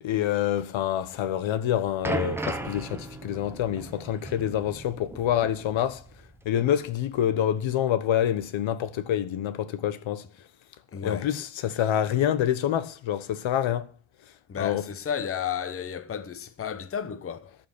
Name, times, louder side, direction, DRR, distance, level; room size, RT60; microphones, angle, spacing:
voice 1, 0.0-6.0 6.4-10.2 11.0-13.9 14.6-14.8, left 10 dB, 80° left, 1.3 m, -27 dB
sound 1, 1.4-6.3 6.6-6.8 7.5-7.6, right 2 dB, 5° right, 1.0 m, -36 dB
voice 2, 10.9-11.3 14.5-17.6, left 8 dB, 30° left, 0.9 m, -33 dB
14.5 x 6.0 x 8.9 m
wide cardioid pair, 180°, 46 cm